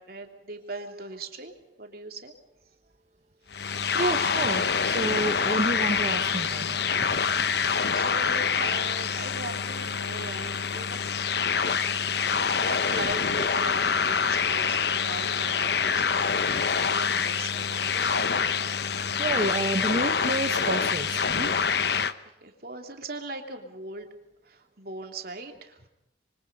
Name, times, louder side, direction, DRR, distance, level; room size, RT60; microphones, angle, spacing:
voice 1, 0.0-2.3 7.0-7.3 7.6-11.9 12.5-19.2 21.3-21.5 22.4-24.1 24.4-25.9, right 2 dB, 55° right, 4 dB, 3.1 m, -40 dB
sound 1, 3.5-22.1, left 6 dB, 60° left, 0.9 m, -26 dB
voice 2, 3.9-6.8 19.2-21.5, right 2 dB, 40° right, 5 dB, 1.2 m, -29 dB
26.5 x 24.5 x 5.4 m, 0.87 s
head